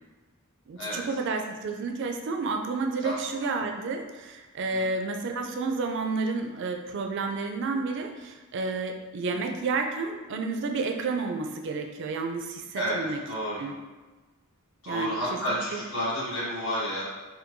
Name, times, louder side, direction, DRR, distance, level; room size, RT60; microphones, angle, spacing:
voice 1, 0.7-13.2 13.6-13.8 14.9-15.4 15.7-15.8, right 3 dB, 55° right, 4 dB, 0.4 m, -31 dB
voice 2, 13.3-13.6 14.8-17.0, equal, 60° left, -8 dB, 1.3 m, -30 dB
4.4 x 2.2 x 2.6 m, 1.2 s
head